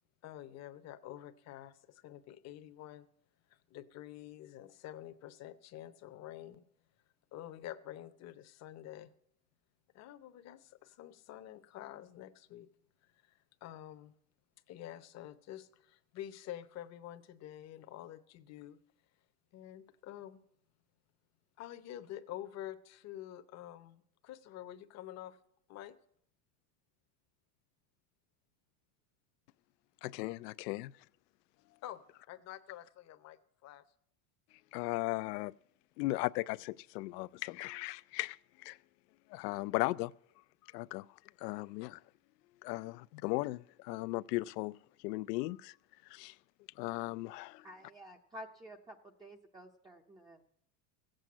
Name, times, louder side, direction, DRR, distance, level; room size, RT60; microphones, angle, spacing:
voice 1, 0.2-3.1 3.5-6.6 7.3-9.1 9.9-12.7 13.0-14.1 14.7-18.8 19.5-20.4 21.6-25.4 25.7-26.0 31.8-32.0 32.3-33.8 41.6-41.7, left 12 dB, 35° left, 0.8 m, -48 dB
voice 2, 30.0-30.9 34.7-35.5 36.0-38.8 39.3-40.1 40.7-42.0 42.6-45.7 46.0-46.4 46.8-47.7, left 20 dB, 80° left, 0.6 m, -37 dB
voice 3, 47.6-50.4, equal, 10° right, 0.6 m, -51 dB
15.5 x 7.8 x 8.4 m
supercardioid pair, 145°, 48 cm